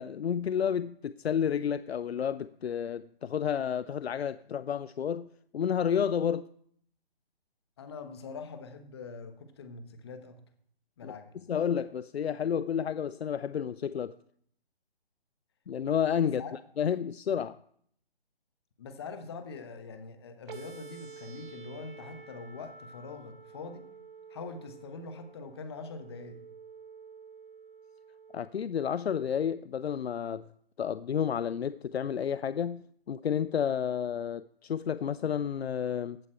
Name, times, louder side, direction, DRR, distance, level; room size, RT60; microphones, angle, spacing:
voice 1, 0.0-6.5 11.0-11.1 11.5-14.2 15.7-16.4 16.8-17.6 28.3-30.4 30.8-36.2, left 8 dB, 80° left, 0.5 m, -31 dB
voice 2, 7.8-10.4 11.0-11.3 16.4-16.6 18.8-23.8 24.3-26.4, left 4 dB, 25° left, 1.2 m, -43 dB
sound 1, 20.5-28.5, right 5 dB, 55° right, 1.2 m, -50 dB
14.5 x 8.3 x 4.5 m
figure-of-eight pair, 160°, 31 cm